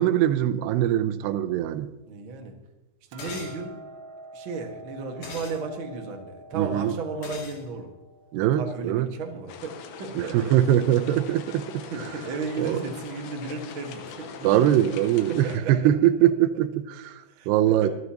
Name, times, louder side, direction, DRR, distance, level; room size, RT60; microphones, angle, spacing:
voice 1, 0.0-1.9 6.5-6.9 8.3-9.1 10.2-11.9 12.6-12.8 14.4-17.9, right 12 dB, 85° right, 2.7 m, -22 dB
voice 2, 2.1-2.5 3.1-3.8 4.3-7.9 8.6-10.6 11.9-14.8 15.3-15.8 17.3-17.9, right 4 dB, 55° right, 1.4 m, -34 dB
Hammer, 3.1-9.3, right 2 dB, 70° right, 2.5 m, -46 dB
sound 1, 3.2-3.6 5.2-5.6 7.2-7.6, left 4 dB, 90° left, 4.6 m, -39 dB
sound 2, 9.5-15.6, left 6 dB, 70° left, 2.8 m, -42 dB
25.0 x 9.4 x 2.9 m
omnidirectional pair, 4.7 m